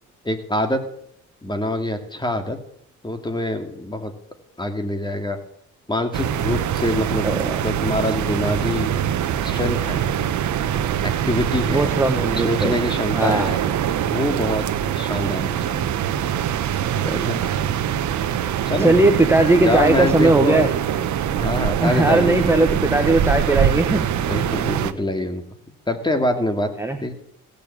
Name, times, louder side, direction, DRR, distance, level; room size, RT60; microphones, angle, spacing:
voice 1, 0.2-0.8 1.4-2.6 3.0-4.1 4.6-5.4 5.9-8.9 9.4-10.0 11.0-11.9 12.3-13.7 14.1-14.7 15.0-15.8 17.2-17.4 18.7-18.9 19.6-20.7 21.4-23.2 24.3-25.4 25.9-26.7 27.0-27.1, left 1 dB, 15° left, 6 dB, 2.4 m, -25 dB
sound 1, 6.1-24.9, right 9 dB, 70° right, 1.1 m, -23 dB
voice 2, 7.2-7.6 11.7-12.7 13.1-13.5 17.0-17.2 18.8-20.7 21.8-24.0 26.8-27.0, right 2 dB, 10° right, 5 dB, 1.4 m, -18 dB
17.0 x 6.9 x 8.7 m, 0.71 s
cardioid pair, 90°, 30 cm